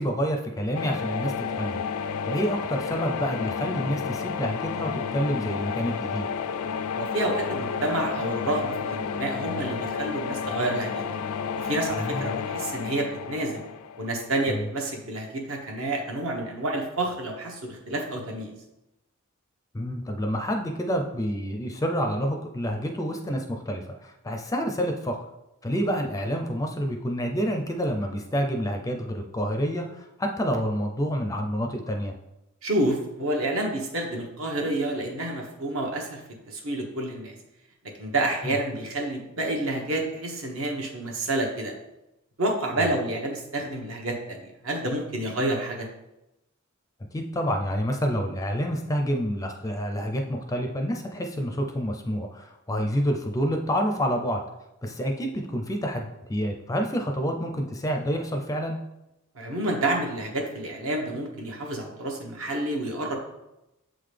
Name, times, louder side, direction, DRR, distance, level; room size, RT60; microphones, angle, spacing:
voice 1, 0.0-1.8 2.2-6.3 12.0-12.3 14.5-14.7 19.7-25.2 25.6-32.1 38.4-38.5 42.8-42.9 47.1-54.4 54.8-58.8, equal, 15° left, 3 dB, 0.4 m, -28 dB
sound 1, 0.7-14.6, left 6 dB, 80° left, 0.4 m, -31 dB
voice 2, 6.9-11.0 11.6-13.6 14.0-18.6 32.6-36.2 36.5-37.3 38.0-41.7 42.4-45.9 59.3-63.1, right 1 dB, 65° right, 1 dB, 1.1 m, -29 dB
7.6 x 3.8 x 3.3 m, 0.93 s
head